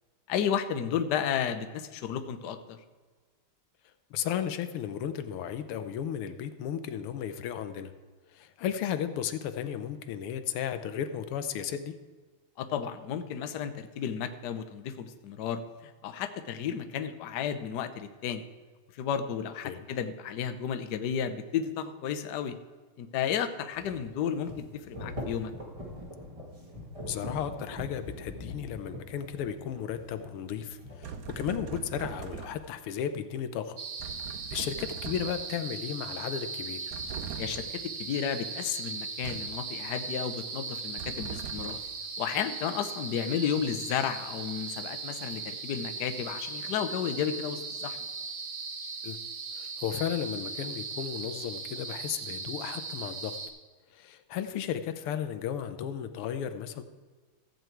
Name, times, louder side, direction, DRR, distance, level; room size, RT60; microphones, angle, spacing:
voice 1, 0.3-2.8 12.6-18.4 18.9-22.5 23.0-25.5 37.4-41.8 42.2-48.0, left 8 dB, 60° left, 9 dB, 1.2 m, -33 dB
voice 2, 4.1-7.9 8.3-11.9 19.6-19.9 27.1-33.8 34.5-36.9 49.0-49.2 49.5-53.4 53.9-56.8, left 9 dB, 90° left, 9 dB, 1.7 m, -34 dB
sound 1, 23.7-31.9, left 1 dB, 15° right, 1.4 m, -43 dB
sound 2, 31.0-32.8 34.0-35.6 36.9-37.8 39.2-39.7 41.0-41.9, right 7 dB, 70° right, 0.8 m, -41 dB
sound 3, 33.8-53.5, right 4 dB, 45° right, 1.3 m, -38 dB
14.5 x 7.8 x 4.6 m, 1.4 s
omnidirectional pair, 2.4 m